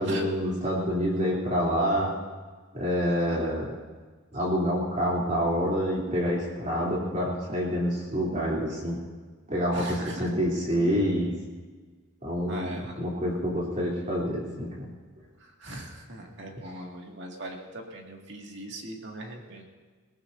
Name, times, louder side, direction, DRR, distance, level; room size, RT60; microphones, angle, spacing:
voice 1, 0.0-2.1 2.7-3.7 4.3-9.0 9.5-11.3 12.2-14.9, equal, 35° right, -4 dB, 3.4 m, -27 dB
voice 2, 9.7-10.3 12.5-12.9 15.4-19.6, right 1 dB, 55° right, 0 dB, 2.3 m, -39 dB
22.0 x 17.5 x 2.8 m, 1.4 s
head